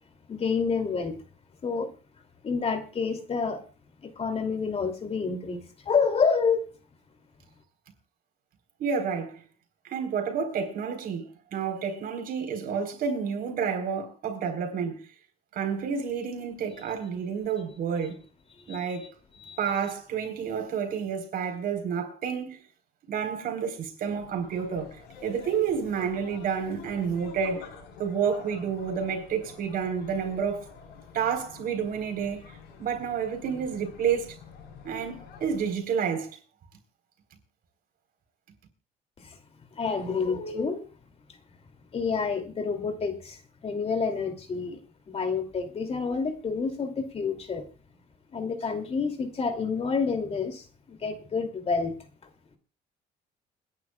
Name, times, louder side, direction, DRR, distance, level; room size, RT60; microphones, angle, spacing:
voice 1, 0.3-1.2 1.6-1.9 2.4-3.6 4.0-6.7 18.7-18.9 19.4-19.6 39.2-39.4 39.7-40.9 41.9-44.8 45.1-47.6 48.3-52.0, left 5 dB, 35° left, 2.7 m, -28 dB
voice 2, 8.8-9.4 9.8-15.1 15.5-18.2 18.7-19.1 19.6-22.6 23.1-27.7 28.0-30.7 31.1-32.4 32.8-34.4 34.8-36.4, right 7 dB, 60° right, 4.1 m, -30 dB
sound 1, 24.0-35.8, left 5 dB, 85° left, 7.2 m, -48 dB
30.0 x 10.5 x 2.3 m
cardioid pair, 110°, 17 cm